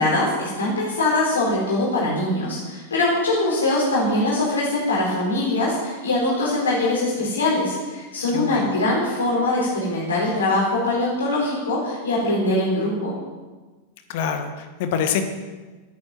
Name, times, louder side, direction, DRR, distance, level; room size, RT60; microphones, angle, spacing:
voice 1, 0.0-13.1, left 2 dB, 70° left, -5 dB, 4.4 m, -22 dB
voice 2, 8.3-8.7 14.1-15.2, left 7 dB, 50° left, 7 dB, 1.5 m, -25 dB
13.0 x 9.6 x 6.1 m, 1.3 s
figure-of-eight pair, 90°, 0 cm